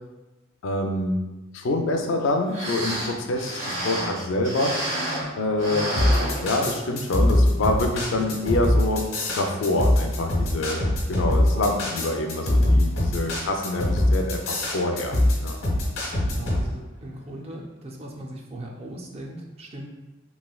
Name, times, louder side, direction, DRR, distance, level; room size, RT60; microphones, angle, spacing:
voice 1, 0.6-1.2 1.5-4.9 5.4-6.0 6.4-10.8 11.1-15.1 15.4-15.6, left 2 dB, 65° left, 3 dB, 0.4 m, -26 dB
sound 1, 2.2-2.3 2.5-5.3 5.6-7.0 7.4-7.5 8.1-8.4 8.8-8.9, right 1 dB, 70° right, 1.4 m, -30 dB
sound 2, 6.0-16.6, left 1 dB, 85° left, 0.9 m, -22 dB
voice 2, 16.3-19.9, right 1 dB, 30° right, 0 dB, 0.4 m, -38 dB
3.1 x 3.0 x 2.3 m, 1.1 s
head